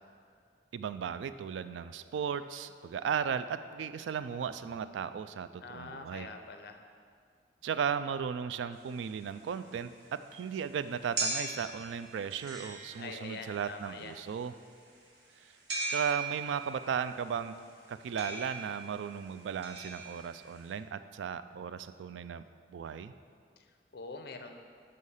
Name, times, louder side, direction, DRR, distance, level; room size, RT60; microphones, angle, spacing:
voice 1, 0.7-6.3 7.6-14.5 15.9-17.5 17.9-22.4 22.7-23.1, right 7 dB, 90° right, 12 dB, 0.3 m, -36 dB
voice 2, 5.6-6.8 13.0-14.2 23.9-24.6, left 3 dB, 60° left, 6 dB, 0.6 m, -44 dB
sound 1, 8.8-20.7, right 3 dB, 65° right, 1.1 m, -40 dB
6.4 x 5.5 x 5.5 m, 2.2 s
head